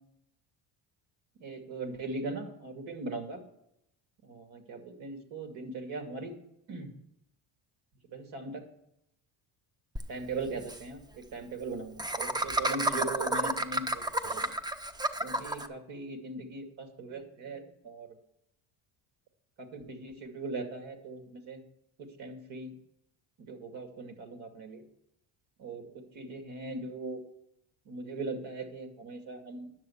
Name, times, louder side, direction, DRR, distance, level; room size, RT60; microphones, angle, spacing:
voice 1, 1.4-3.4 4.2-6.4 6.7-6.9 8.1-8.6 10.1-14.5 15.2-18.1 19.7-21.6 22.0-22.8 23.4-24.8 25.6-25.9 26.1-27.2 27.9-29.7, right 3 dB, 75° right, 5 dB, 2.4 m, -39 dB
Laughter, 10.0-10.1 10.3-10.4 10.6-10.8 12.0-15.7, right 1 dB, 10° right, 0.4 m, -31 dB
10.5 x 7.6 x 7.1 m, 0.79 s
cardioid pair, 165°, 46 cm